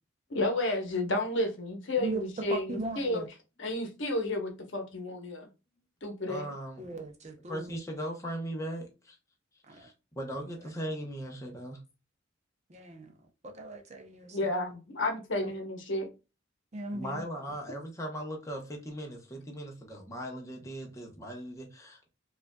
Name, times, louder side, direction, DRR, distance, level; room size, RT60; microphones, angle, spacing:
voice 1, 0.3-3.2 3.6-5.5 6.0-6.5 14.3-16.1, left 2 dB, 65° left, 1.0 m, -31 dB
voice 2, 2.0-3.3 6.8-7.8 9.7-9.9 10.6-10.7 12.7-13.1 13.4-14.5 15.4-15.5 16.7-17.3, right 2 dB, 35° right, 0.6 m, -39 dB
voice 3, 6.3-6.8 7.5-9.2 9.7-11.8 16.9-22.1, equal, 15° left, 0.8 m, -39 dB
4.9 x 2.4 x 2.2 m
head